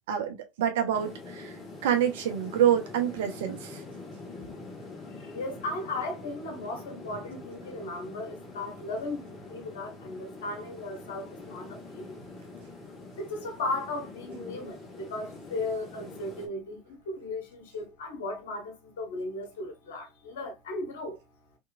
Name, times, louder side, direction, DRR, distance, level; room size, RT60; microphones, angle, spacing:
voice 1, 0.1-1.6 1.8-3.8, right 9 dB, 75° right, 0.7 m, -27 dB
sound 1, 0.9-16.5, left 3 dB, 30° left, 1.5 m, -45 dB
voice 2, 5.1-12.1 13.2-21.2, left 2 dB, 80° left, 1.0 m, -36 dB
3.5 x 2.9 x 2.4 m
hypercardioid pair, 85°, 0 cm